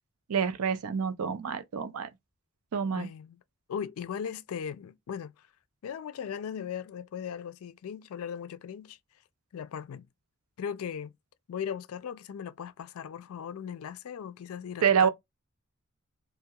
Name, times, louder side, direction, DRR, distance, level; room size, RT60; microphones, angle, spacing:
voice 1, 0.3-2.1 2.7-3.1 14.8-15.1, right 7 dB, 90° right, 0.4 m, -27 dB
voice 2, 2.9-3.4 3.7-5.3 5.8-9.0 9.5-10.1 10.6-11.1 11.5-15.1, left 8 dB, 75° left, 0.3 m, -38 dB
2.2 x 2.2 x 2.7 m
head